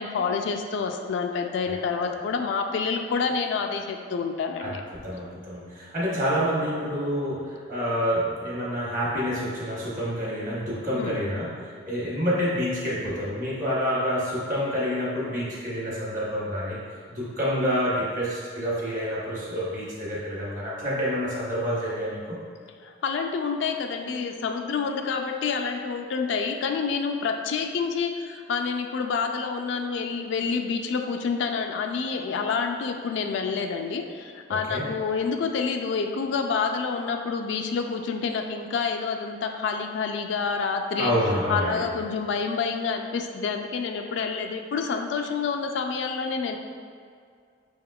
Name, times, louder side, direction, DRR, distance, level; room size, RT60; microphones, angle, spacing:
voice 1, 0.0-4.8 10.9-11.2 22.8-41.1 41.5-46.6, left 5 dB, 70° left, 5 dB, 0.3 m, -28 dB
voice 2, 4.6-16.8 17.1-22.4 34.5-34.9 41.0-41.9, equal, 40° right, -6 dB, 1.0 m, -28 dB
5.7 x 3.5 x 2.3 m, 2.2 s
head